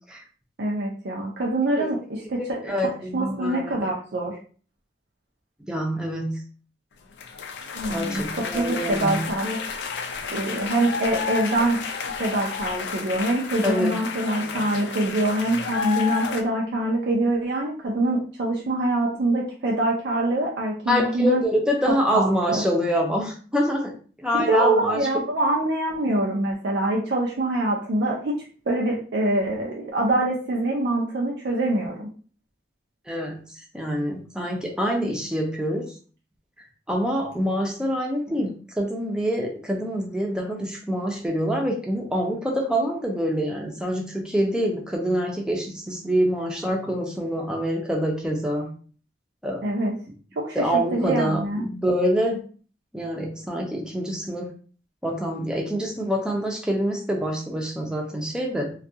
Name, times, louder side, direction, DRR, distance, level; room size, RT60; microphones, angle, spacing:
voice 1, 0.6-2.6 3.1-4.4 7.7-9.6 10.3-11.8 12.2-21.4 22.1-22.6 24.3-28.3 28.7-32.1 49.6-49.9 50.4-50.7 50.9-51.7, right 1 dB, 85° right, -2 dB, 0.5 m, -24 dB
voice 2, 2.4-3.7 5.7-6.4 7.9-9.2 13.6-14.0 20.9-25.1 33.1-35.9 36.9-48.7 49.4-49.7 50.5-52.4 52.9-54.5 55.0-58.7, equal, 5° right, 0 dB, 0.4 m, -26 dB
sound 1, 7.2-16.4, left 6 dB, 85° left, 0.4 m, -31 dB
2.3 x 2.2 x 2.7 m, 0.41 s
head